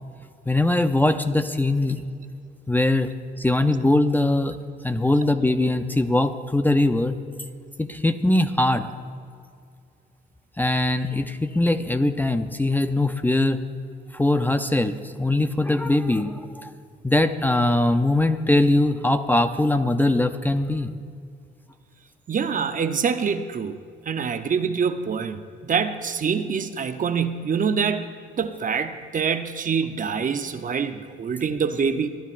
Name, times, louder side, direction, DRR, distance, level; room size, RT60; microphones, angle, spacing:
voice 1, 0.5-2.1 2.7-3.1 3.4-4.5 4.8-7.2 7.8-8.9 10.6-13.6 14.1-16.7 17.0-20.9, left 2 dB, 10° left, 8 dB, 0.5 m, -21 dB
voice 2, 22.3-23.8 24.1-28.1 28.3-32.1, right 6 dB, 40° right, 9 dB, 0.7 m, -25 dB
28.0 x 10.0 x 2.5 m, 2.3 s
cardioid pair, 90°, 20 cm